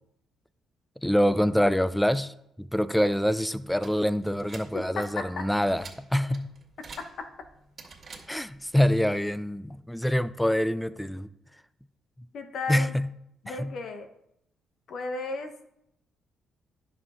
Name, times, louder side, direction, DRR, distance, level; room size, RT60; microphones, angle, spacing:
voice 1, 1.0-5.8 6.1-6.5 8.3-11.3 12.7-13.1 13.5-13.7, equal, 5° left, 14 dB, 0.5 m, -25 dB
sound 1, 3.7-8.7, right 4 dB, 40° right, 2.2 m, -49 dB
voice 2, 4.7-5.4 7.0-7.3 12.3-12.9 13.4-14.1 14.9-15.5, left 3 dB, 60° left, 7 dB, 1.1 m, -34 dB
10.5 x 6.4 x 3.7 m, 0.79 s
cardioid pair, 100°, 0 cm